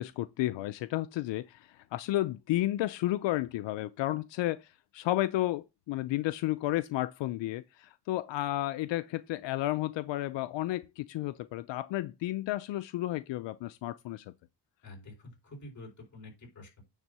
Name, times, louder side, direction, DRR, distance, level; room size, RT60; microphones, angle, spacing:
voice 1, 0.0-14.3, left 15 dB, 85° left, 0.6 m, -32 dB
voice 2, 14.8-16.8, left 2 dB, 40° left, 4.7 m, -48 dB
9.3 x 3.6 x 6.7 m
cardioid pair, 125°, 43 cm